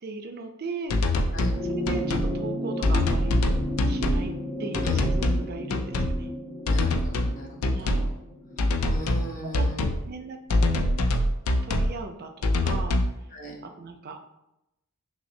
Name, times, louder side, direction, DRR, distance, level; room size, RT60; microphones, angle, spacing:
voice 1, 0.0-1.3 1.6-3.5 3.9-4.3 4.6-6.3 7.7-8.1 9.6-9.7 10.0-11.0 11.6-13.0 13.8-14.2, right 4 dB, 45° right, 6 dB, 0.4 m, -38 dB
sound 1, 0.9-1.6 1.9-2.3 2.8-4.3 4.7-5.4 5.7-6.2 6.7-7.3 7.6-8.1 8.6-9.3 9.5-10.0 10.5-11.9 12.4-13.1, left 1 dB, 75° left, 0.4 m, -24 dB
sound 2, 1.3-9.9 11.1-11.2, equal, 15° right, 1.2 m, -34 dB
voice 2, 6.7-8.1 8.9-10.0 13.3-13.6, equal, 35° left, -1 dB, 0.8 m, -39 dB
5.7 x 2.0 x 2.6 m, 0.88 s
head